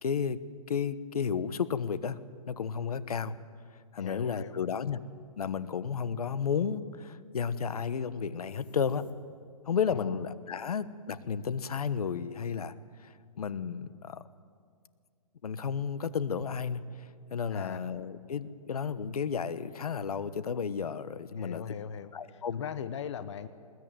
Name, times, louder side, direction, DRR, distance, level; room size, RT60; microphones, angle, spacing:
voice 1, 0.0-0.4 0.7-2.2 2.5-3.4 3.9-5.0 5.4-9.1 9.7-14.2 15.4-21.6 22.1-22.6, left 6 dB, 80° left, 14 dB, 1.2 m, -33 dB
voice 2, 4.0-4.6 9.9-10.2 17.5-17.8 21.4-23.5, left 8 dB, 50° left, 11 dB, 1.0 m, -40 dB
sound 1, 8.5-9.7, left 5 dB, 35° left, 2.4 m, -54 dB
21.0 x 20.5 x 9.1 m, 2.1 s
hypercardioid pair, 160°, 19 cm